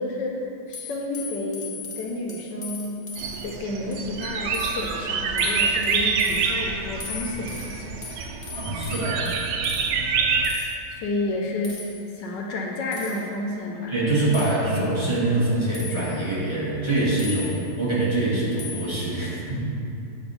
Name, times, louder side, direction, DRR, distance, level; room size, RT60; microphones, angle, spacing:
voice 1, 0.0-3.0 3.4-8.0 10.9-11.8 12.2-13.9, left 2 dB, 75° left, 0 dB, 1.2 m, -30 dB
sound 1, 0.7-3.5 3.9-4.3 4.5-4.9 5.4-6.5 7.0-9.9 10.4-10.7 11.6-12.0 12.9-13.3 14.3-14.6 15.7-16.2 17.2-17.8 18.6-19.0, left 5 dB, 45° left, 0.7 m, -38 dB
sound 2, 3.2-10.5, right 5 dB, 90° right, 1.4 m, -26 dB
voice 2, 8.5-9.3 13.9-19.7, right 2 dB, 20° right, -8 dB, 0.9 m, -24 dB
7.7 x 2.6 x 5.4 m, 2.5 s
omnidirectional pair, 2.1 m